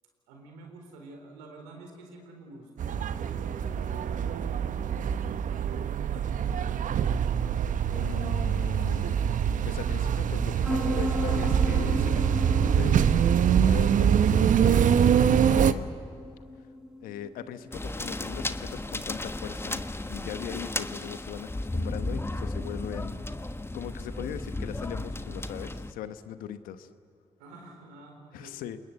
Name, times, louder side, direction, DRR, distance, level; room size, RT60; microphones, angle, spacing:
voice 1, 0.3-7.3 27.4-28.6, right 2 dB, 85° right, 2 dB, 4.2 m, -49 dB
sound 1, 2.8-15.7, right 8 dB, 65° right, 0.9 m, -24 dB
voice 2, 7.9-9.2 9.6-13.2 13.6-15.9 17.0-19.8 20.1-26.9 28.3-28.8, left 10 dB, 75° left, 12 dB, 1.1 m, -40 dB
sound 2, 10.6-22.1, left 1 dB, 5° right, 4.1 m, -38 dB
sound 3, 17.7-25.9, left 2 dB, 15° left, 1.3 m, -34 dB
28.5 x 20.5 x 8.1 m, 2.4 s
hypercardioid pair, 40°, 15 cm